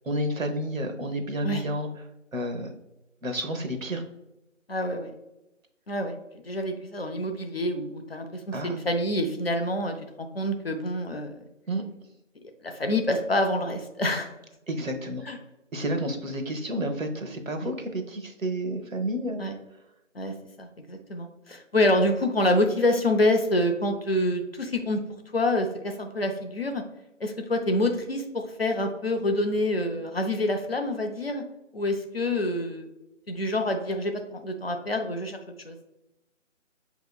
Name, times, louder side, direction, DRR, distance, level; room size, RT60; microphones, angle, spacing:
voice 1, 0.0-1.9 2.3-2.7 3.2-4.0 8.5-8.8 11.7-11.8 14.7-15.3 15.7-19.4, right 1 dB, 85° right, 5 dB, 0.8 m, -30 dB
voice 2, 4.7-5.1 5.9-6.2 6.4-11.4 12.6-14.3 15.3-15.4 17.6-17.7 19.4-19.5 20.1-25.0 25.3-26.8 27.2-31.4 31.7-32.9 33.3-35.4 35.6-35.8, left 1 dB, 50° left, 5 dB, 0.5 m, -27 dB
5.7 x 2.9 x 2.2 m, 0.93 s
figure-of-eight pair, 155°, 39 cm